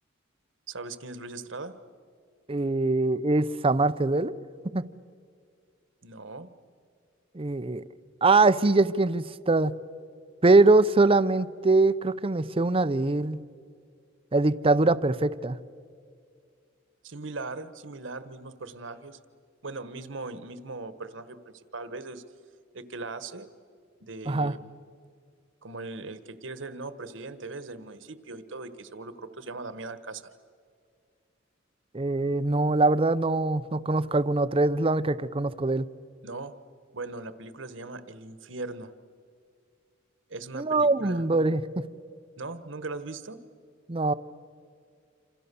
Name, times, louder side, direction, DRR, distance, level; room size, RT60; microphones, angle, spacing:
voice 1, 0.7-1.7 6.0-6.5 17.0-19.2 19.6-22.2 22.7-23.5 24.0-24.7 25.6-30.3 36.2-36.5 36.9-38.9 40.3-41.3 42.4-43.4, right 3 dB, 65° right, 12 dB, 1.3 m, -39 dB
voice 2, 2.5-4.4 4.7-4.8 7.3-7.8 8.2-9.7 10.4-13.4 14.3-15.6 24.3-24.6 31.9-35.9 40.5-41.9 43.9-44.1, right 3 dB, 30° right, 15 dB, 0.6 m, -23 dB
28.0 x 27.0 x 6.9 m, 2.3 s
head